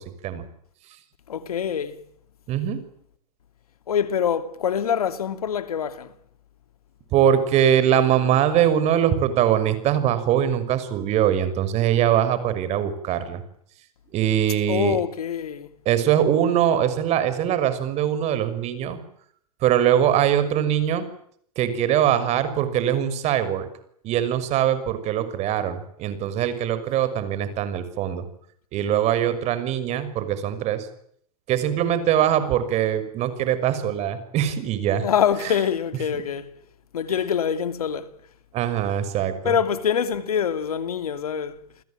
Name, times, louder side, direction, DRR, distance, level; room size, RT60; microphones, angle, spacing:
voice 1, 1.3-2.0 3.9-6.1 14.7-15.7 35.0-36.5 36.9-38.1 39.4-41.6, left 8 dB, 90° left, 2.7 m, -25 dB
voice 2, 2.5-2.8 7.1-13.4 14.1-15.0 15.8-19.0 19.6-21.1 21.6-23.7 24.0-28.2 28.7-30.9 31.5-35.0 38.5-39.5, right 10 dB, 35° right, 6.1 m, -22 dB
30.0 x 20.5 x 9.1 m
hypercardioid pair, 125°, 19 cm